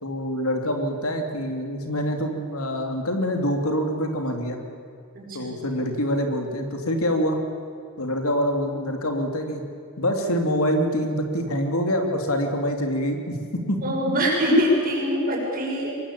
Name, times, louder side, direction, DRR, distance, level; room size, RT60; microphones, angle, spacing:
voice 1, 0.0-4.6 5.3-7.4 8.0-9.6 10.0-13.8, equal, 70° left, 4 dB, 3.1 m, -25 dB
voice 2, 5.1-5.5 13.8-16.0, equal, 40° right, -2 dB, 6.9 m, -23 dB
25.0 x 21.5 x 8.7 m, 2.4 s
head